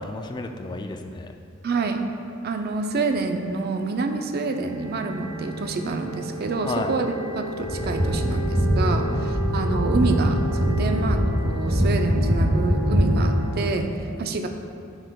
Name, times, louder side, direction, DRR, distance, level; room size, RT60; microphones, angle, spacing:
voice 1, 0.0-1.3 6.5-7.0 8.9-9.4, left 2 dB, 20° left, 5 dB, 0.3 m, -32 dB
voice 2, 1.6-2.0 2.4-14.5, right 3 dB, 50° right, 5 dB, 0.4 m, -27 dB
sound 1, 4.1-13.6, equal, 85° right, 1.4 m, -34 dB
sound 2, 7.6-13.3, equal, 25° right, 1.2 m, -22 dB
9.6 x 4.7 x 2.3 m, 2.5 s
head